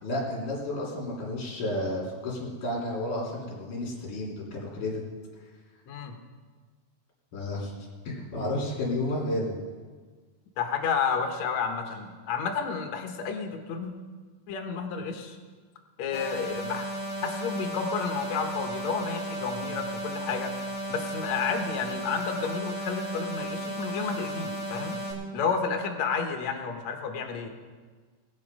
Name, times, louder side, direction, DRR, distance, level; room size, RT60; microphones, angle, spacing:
voice 1, 0.0-5.0 7.3-7.7 8.0-9.6, left 1 dB, 35° left, -3 dB, 3.6 m, -31 dB
voice 2, 10.6-13.9 14.5-15.4 16.0-16.9 17.2-20.5 20.9-25.0 25.3-27.5, left 5 dB, 65° left, 4 dB, 1.9 m, -31 dB
sound 1, 16.1-25.1, right 1 dB, ahead, 2.7 m, -35 dB
20.0 x 8.3 x 5.3 m, 1.5 s
omnidirectional pair, 4.6 m